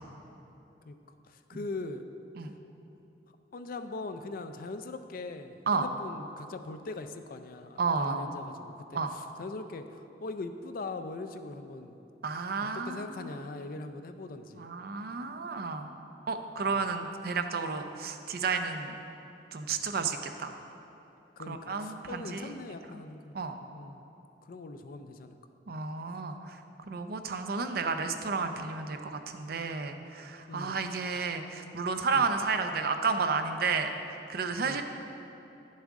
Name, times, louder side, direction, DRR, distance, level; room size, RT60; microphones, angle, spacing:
voice 1, 1.3-2.1 3.3-12.0 12.6-14.7 16.7-16.9 21.4-23.3 23.7-24.0 24.4-25.3 30.5-30.8 32.1-32.3 34.6-34.8, left 3 dB, 55° left, 9 dB, 0.4 m, -41 dB
voice 2, 7.8-8.2 8.9-9.1 12.2-13.3 14.6-15.9 16.3-18.9 19.5-20.5 21.5-22.5 23.3-23.5 25.7-26.6 26.9-33.9 34.3-34.8, right 4 dB, 60° right, 7 dB, 0.5 m, -32 dB
10.5 x 7.3 x 3.6 m, 3.0 s
head